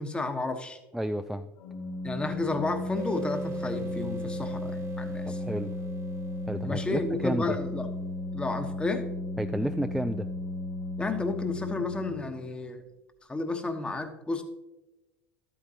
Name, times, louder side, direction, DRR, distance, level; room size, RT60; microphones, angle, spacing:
voice 1, 0.0-0.8 2.0-5.4 6.6-7.9 8.3-9.0 11.0-12.8 13.3-14.4, left 3 dB, 15° left, 6 dB, 1.2 m, -32 dB
voice 2, 0.9-1.5 5.3-5.7 6.5-7.6 9.4-10.3, equal, ahead, 9 dB, 0.4 m, -31 dB
Organ, 1.6-12.4, left 1 dB, 50° left, 2.3 m, -35 dB
sound 1, 3.0-8.3, right 2 dB, 45° right, 1.0 m, -42 dB
12.5 x 8.7 x 2.9 m, 1.0 s
hypercardioid pair, 75°, 7 cm